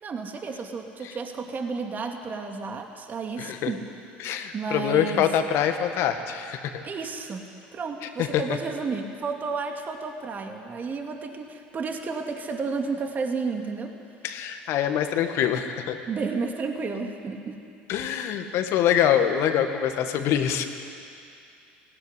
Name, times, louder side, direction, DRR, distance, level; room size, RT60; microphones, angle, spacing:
voice 1, 0.0-3.8 4.5-5.3 6.8-13.9 16.1-17.6, right 4 dB, 35° right, 3 dB, 2.5 m, -32 dB
voice 2, 3.4-3.7 4.2-6.8 8.2-8.4 14.2-16.0 17.9-20.7, left 9 dB, 60° left, 7 dB, 1.8 m, -24 dB
18.0 x 17.0 x 9.9 m, 2.5 s
hypercardioid pair, 80°, 5 cm